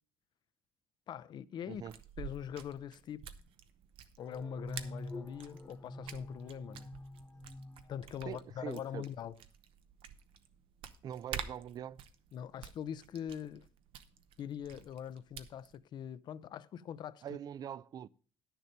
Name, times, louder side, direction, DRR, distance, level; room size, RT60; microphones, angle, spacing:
voice 1, 1.1-1.8 2.2-3.2 4.2-6.9 7.9-9.3 12.3-13.7 14.4-17.2, left 9 dB, 50° left, 0.5 m, -43 dB
sound 1, 1.7-15.8, right 8 dB, 70° right, 0.8 m, -50 dB
sound 2, 4.2-8.7, left 1 dB, 20° left, 1.1 m, -47 dB
voice 2, 8.2-9.0 11.0-12.0 17.2-18.1, right 9 dB, 45° right, 0.4 m, -43 dB
10.5 x 6.8 x 5.2 m
cardioid pair, 125°, 9 cm